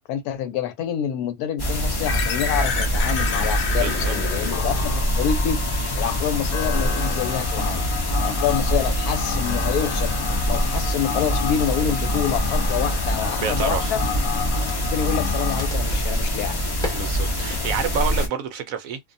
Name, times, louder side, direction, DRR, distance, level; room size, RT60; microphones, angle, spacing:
voice 1, 0.1-10.1 10.5-14.0 14.5-16.6, left 9 dB, 90° left, 1.1 m, -27 dB
sound 1, 1.6-18.3, equal, 35° left, 0.4 m, -24 dB
sound 2, 2.1-15.7, left 7 dB, 60° left, 0.7 m, -31 dB
voice 2, 3.8-4.1 13.4-14.0 16.9-19.0, right 7 dB, 70° right, 0.9 m, -28 dB
sound 3, 11.7-17.9, left 1 dB, 5° left, 0.7 m, -45 dB
2.6 x 2.1 x 2.6 m
omnidirectional pair, 1.6 m